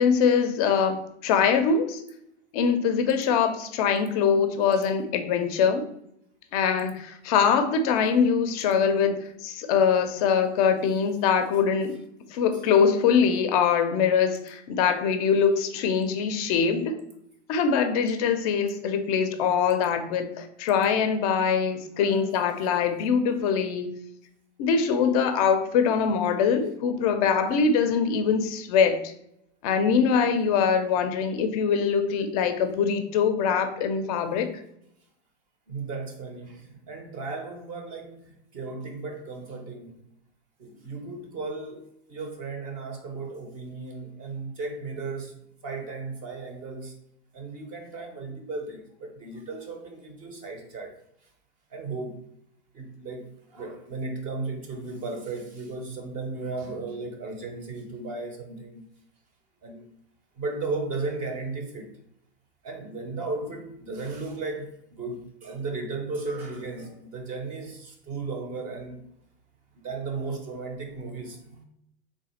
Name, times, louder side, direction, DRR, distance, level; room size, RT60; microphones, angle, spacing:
voice 1, 0.0-2.0 2.5-5.8 6.5-12.0 12.3-17.0 17.5-23.9 24.6-29.1 29.6-34.5, left 6 dB, 35° left, 8 dB, 0.4 m, -23 dB
voice 2, 21.9-22.3 35.7-39.9 40.6-45.3 45.6-47.0 47.3-51.3 51.7-52.2 52.7-58.8 59.6-59.9 60.4-61.9 62.6-69.0 69.7-71.6, right 3 dB, 25° right, 4 dB, 0.5 m, -35 dB
3.5 x 2.4 x 4.1 m, 0.75 s
hypercardioid pair, 135°, 35 cm